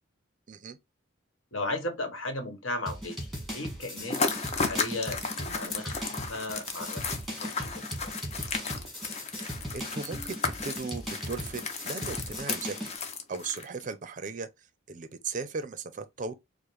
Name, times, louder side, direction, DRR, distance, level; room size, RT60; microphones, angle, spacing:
voice 1, 1.5-3.3 3.5-7.8, left 2 dB, 80° left, 1.1 m, -36 dB
sound 1, 2.9-13.0, equal, ahead, 1.4 m, -38 dB
sound 2, 4.1-13.8, left 4 dB, 30° left, 0.6 m, -34 dB
voice 2, 9.7-10.4 10.6-12.9 13.3-14.5 14.9-16.3, right 4 dB, 40° right, 0.4 m, -37 dB
4.8 x 2.0 x 3.0 m
head